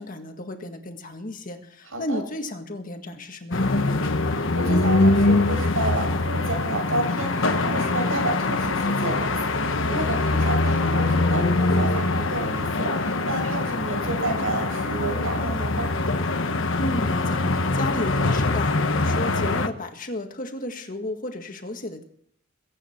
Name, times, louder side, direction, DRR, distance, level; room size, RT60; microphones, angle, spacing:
voice 1, 0.0-4.2 16.8-22.0, left 1 dB, 40° left, 5 dB, 1.8 m, -33 dB
voice 2, 1.9-2.2 4.3-15.9, right 2 dB, 85° right, 2 dB, 5.9 m, -30 dB
sound 1, 3.5-19.7, left 2 dB, 65° left, 1.2 m, -23 dB
sound 2, 13.3-19.5, left 2 dB, 85° left, 2.9 m, -43 dB
22.5 x 8.8 x 4.5 m, 0.67 s
head